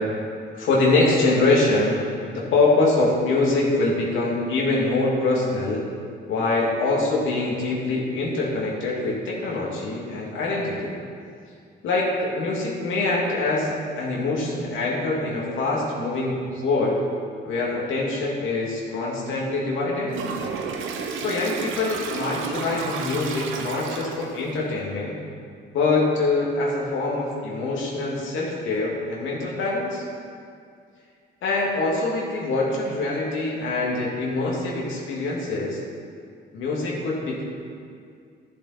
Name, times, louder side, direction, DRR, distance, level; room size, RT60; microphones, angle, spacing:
voice 1, 0.6-2.1 2.3-5.9 6.3-11.0 11.8-17.0 17.4-20.2 21.1-25.2 25.7-30.0 31.4-35.8 36.5-37.4, left 2 dB, 80° left, -4 dB, 2.3 m, -24 dB
Toilet flush, 20.1-24.5, right 5 dB, 80° right, 0.9 m, -32 dB
12.0 x 7.4 x 4.2 m, 2.3 s
cardioid pair, 90°, 20 cm